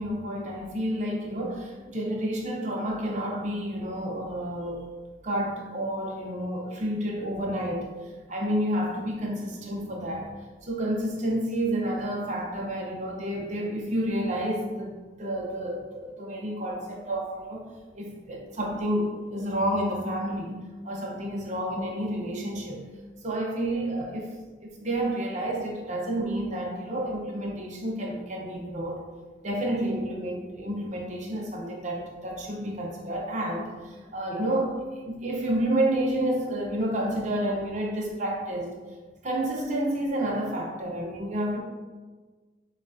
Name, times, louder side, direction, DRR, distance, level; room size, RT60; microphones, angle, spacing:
voice 1, 0.0-4.8 5.2-7.9 8.3-10.3 10.6-17.7 17.9-20.6 20.8-22.8 23.2-24.3 24.7-29.0 29.4-38.7 39.2-41.6, right 1 dB, 40° right, -1 dB, 0.7 m, -30 dB
6.3 x 2.4 x 2.6 m, 1.4 s
head